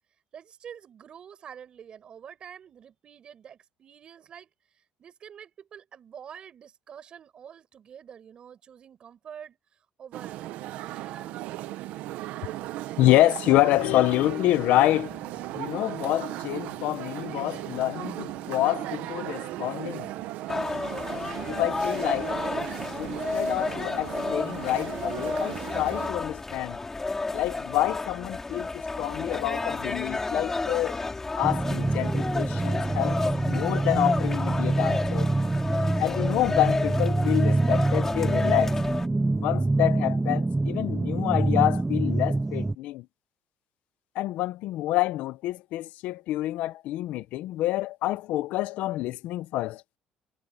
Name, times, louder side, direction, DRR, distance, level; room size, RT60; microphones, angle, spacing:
voice 1, 0.3-4.5 4.7-9.6 10.0-11.7, right 8 dB, 40° right, 6.0 m, -47 dB
sound 1, 10.1-26.1, right 15 dB, 80° right, 1.0 m, -36 dB
voice 2, 13.0-15.2 15.5-20.1 21.5-22.3 23.0-26.8 27.3-31.0 31.4-35.3 36.0-38.8 39.4-43.1 44.1-49.8, left 16 dB, 75° left, 0.8 m, -27 dB
sound 2, 20.5-39.1, left 3 dB, 15° left, 4.4 m, -31 dB
sound 3, 31.4-42.8, right 2 dB, 10° right, 0.7 m, -26 dB
cardioid pair, 135°, 2 cm